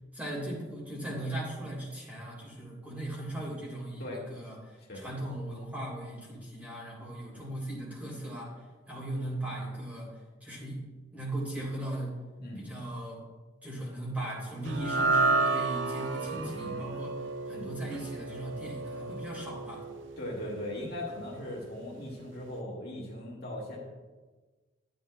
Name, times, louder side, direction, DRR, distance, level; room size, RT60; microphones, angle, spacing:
voice 1, 0.1-10.1 10.4-10.8 11.1-12.1 12.6-13.2 13.6-19.8, right 1 dB, 10° right, -5 dB, 3.0 m, -38 dB
voice 2, 4.8-5.2 12.4-12.7 16.3-16.8 17.5-17.7 20.2-23.8, left 1 dB, 55° left, -4 dB, 1.9 m, -39 dB
sound 1, 14.7-21.1, right 3 dB, 85° right, 0.5 m, -31 dB
12.5 x 9.3 x 2.2 m, 1.3 s
head